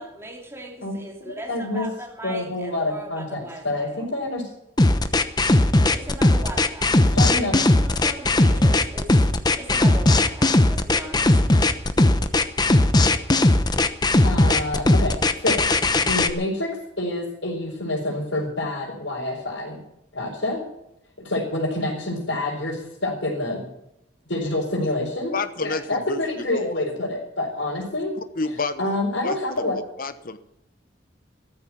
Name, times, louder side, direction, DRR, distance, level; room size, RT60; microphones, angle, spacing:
voice 1, 0.0-4.0 5.9-7.0 7.7-9.3 9.6-11.6, right 1 dB, 15° right, 3.0 m, -39 dB
voice 2, 0.8-1.9 2.2-4.5 7.0-7.6 14.2-15.6 15.9-19.8 20.1-20.6 21.2-23.7 24.3-28.1 28.8-29.8, left 2 dB, 85° left, 4.6 m, -27 dB
sound 1, 4.8-16.3, left 2 dB, 20° left, 0.9 m, -18 dB
voice 3, 25.3-26.2 26.5-26.8 28.4-28.9 29.2-29.4 29.7-30.4, left 3 dB, 50° left, 1.1 m, -29 dB
14.0 x 13.5 x 6.0 m
head